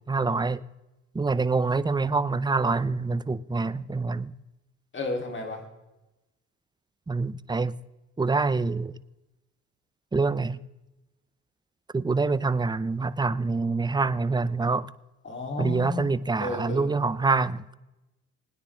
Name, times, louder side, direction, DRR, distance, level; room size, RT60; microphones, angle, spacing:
voice 1, 0.1-0.6 1.1-4.3 7.1-7.8 8.2-8.9 10.1-10.6 11.9-14.9 15.6-17.7, right 3 dB, 15° right, 0.5 m, -26 dB
voice 2, 4.9-5.6 15.2-17.0, left 2 dB, 40° left, 3.0 m, -33 dB
21.0 x 9.8 x 3.4 m
cardioid pair, 90°, 30 cm